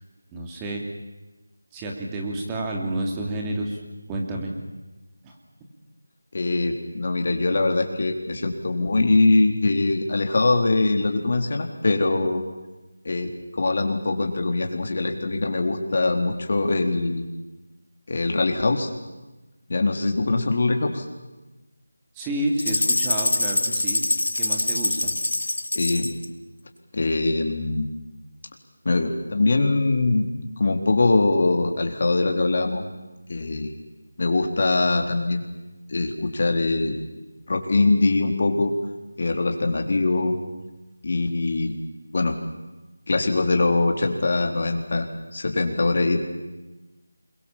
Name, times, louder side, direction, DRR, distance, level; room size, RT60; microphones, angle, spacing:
voice 1, 0.3-0.8 1.7-3.8 4.1-4.5 5.2-5.3 22.1-24.0 24.4-25.1, right 1 dB, 10° right, 0 dB, 2.7 m, -29 dB
voice 2, 6.3-12.4 13.0-17.3 18.1-18.9 19.7-21.0 25.7-26.2 26.9-27.9 28.9-30.3 30.6-32.8 33.3-33.7 34.2-35.4 35.9-37.0 37.5-38.7 39.2-40.3 41.0-41.8 42.1-42.4 43.1-45.1 45.3-46.2, left 2 dB, 45° left, 3 dB, 3.7 m, -22 dB
sound 1, 22.6-26.3, left 2 dB, 85° left, 2.1 m, -24 dB
28.0 x 22.5 x 7.5 m, 1.1 s
figure-of-eight pair, 170°, 0 cm